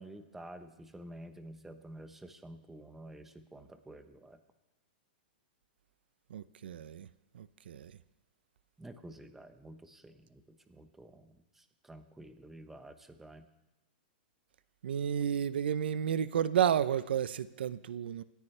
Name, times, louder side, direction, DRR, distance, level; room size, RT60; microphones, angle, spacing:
voice 1, 0.0-4.4 8.8-13.5, right 1 dB, 5° right, 8 dB, 1.0 m, -50 dB
voice 2, 6.3-7.1 7.3-7.9 14.8-18.2, right 9 dB, 80° right, 15 dB, 0.7 m, -31 dB
27.5 x 14.0 x 3.3 m, 1.1 s
hypercardioid pair, 155°, 6 cm